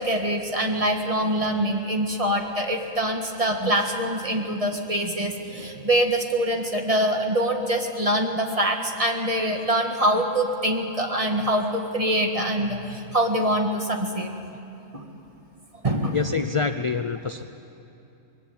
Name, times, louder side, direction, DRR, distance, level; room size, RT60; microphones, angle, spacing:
voice 1, 0.0-14.3 14.9-15.0 15.8-16.2, right 1 dB, 25° right, 3 dB, 1.8 m, -24 dB
voice 2, 16.1-17.4, left 5 dB, 50° left, 9 dB, 0.3 m, -26 dB
21.0 x 16.5 x 9.4 m, 2.9 s
omnidirectional pair, 1.3 m